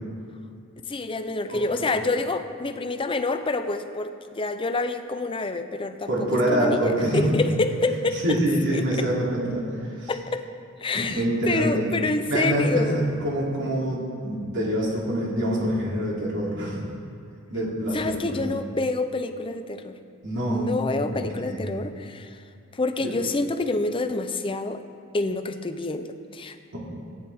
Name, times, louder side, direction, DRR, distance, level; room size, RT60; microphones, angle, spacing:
voice 1, 0.9-8.4 8.7-9.1 10.1-10.5 10.8-13.1 17.9-20.0 20.5-22.4 22.7-24.8 25.1-26.1 26.3-26.8, left 2 dB, 25° left, 9 dB, 0.5 m, -27 dB
voice 2, 1.5-1.9 6.1-7.3 8.2-9.6 9.9-10.1 10.9-11.9 12.3-16.9 17.5-18.4 20.2-20.7 21.0-21.7 23.0-23.1, right 1 dB, 60° right, -5 dB, 3.0 m, -25 dB
15.0 x 9.6 x 3.6 m, 2.5 s
head